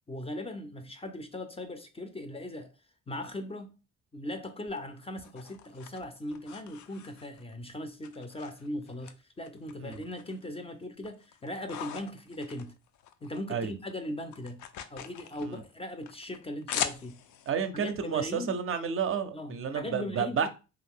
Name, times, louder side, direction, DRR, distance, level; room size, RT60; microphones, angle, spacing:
voice 1, 0.1-2.7 3.1-3.7 4.1-12.7 13.2-14.6 14.9-17.2 17.7-18.6 19.3-20.5, left 1 dB, 20° left, 0.4 m, -39 dB
sound 1, 4.7-7.5 8.0-9.1 9.4-10.5 10.8-13.4 13.7-17.5, left 9 dB, 75° left, 0.4 m, -41 dB
voice 2, 17.5-20.5, right 7 dB, 45° right, 0.5 m, -31 dB
2.7 x 2.4 x 3.5 m
cardioid pair, 90°, 30 cm